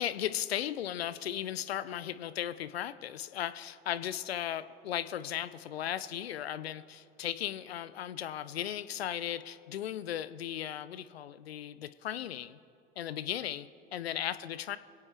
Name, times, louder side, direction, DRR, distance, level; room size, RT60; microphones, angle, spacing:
voice 1, 0.0-12.6 13.0-14.8, left 11 dB, 80° left, 14 dB, 0.5 m, -36 dB
22.5 x 8.6 x 3.3 m, 2.6 s
figure-of-eight pair, 65°, 30 cm